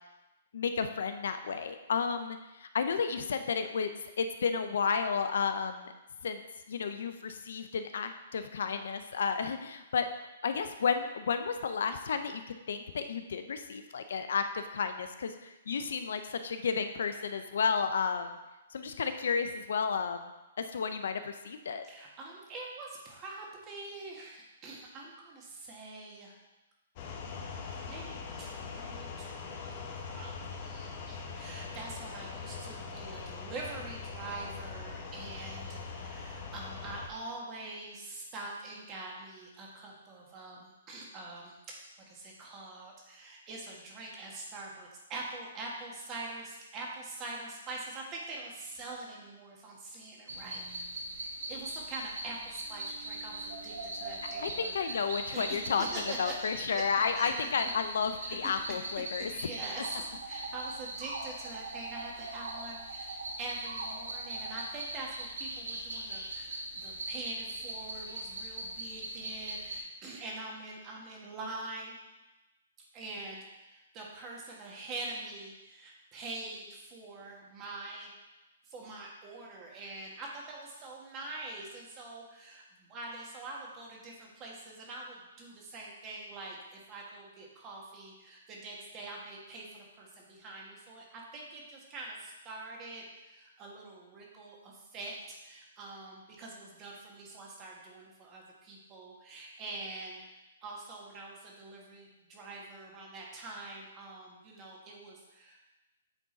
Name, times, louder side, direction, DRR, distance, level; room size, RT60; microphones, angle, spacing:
voice 1, 0.5-5.9 6.2-6.4 6.7-18.4 18.7-20.3 20.6-21.8 54.2-55.9 56.2-59.3 60.3-60.5, left 6 dB, 75° left, 8 dB, 0.5 m, -32 dB
voice 2, 21.8-26.4 27.6-41.8 42.1-50.7 51.5-55.0 55.3-56.5 57.1-57.5 58.2-58.5 59.2-71.9 72.9-78.1 78.6-105.6, right 2 dB, 25° right, -2 dB, 1.7 m, -44 dB
sound 1, 27.0-37.1, left 5 dB, 45° left, 1.0 m, -42 dB
sound 2, 50.3-69.8, right 2 dB, 85° right, 1.1 m, -40 dB
8.3 x 3.8 x 4.0 m, 1.0 s
hypercardioid pair, 140°, 0 cm